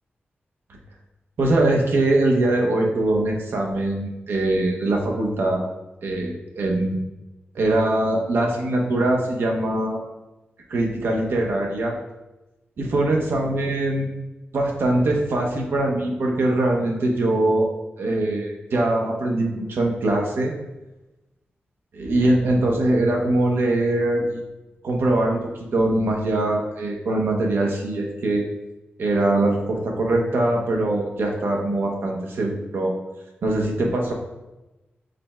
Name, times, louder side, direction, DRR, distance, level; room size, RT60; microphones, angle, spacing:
voice 1, 1.4-5.6 6.0-7.0 7.5-10.0 10.7-12.0 12.8-14.1 14.5-17.7 18.0-20.5 21.9-24.4 24.8-25.4 25.7-28.4 29.0-32.9 33.4-34.1, right 2 dB, 80° right, 0 dB, 0.9 m, -22 dB
5.1 x 2.2 x 4.2 m, 1.0 s
wide cardioid pair, 115°, 4 cm